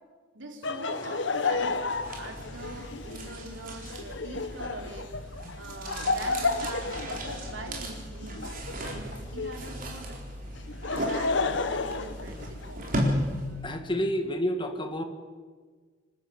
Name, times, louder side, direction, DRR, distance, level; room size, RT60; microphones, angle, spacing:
voice 1, 0.3-1.8 2.2-5.1 5.6-8.4 8.8-10.2 11.0-13.7, right 2 dB, 75° right, 3 dB, 3.4 m, -43 dB
Laughter, 0.6-9.7 10.6-12.9, left 4 dB, 70° left, 1.1 m, -32 dB
sound 1, 1.3-13.7, equal, 50° right, 4.2 m, -36 dB
voice 2, 13.6-15.0, equal, 25° left, 6 dB, 1.9 m, -29 dB
26.5 x 12.0 x 8.3 m, 1.5 s
head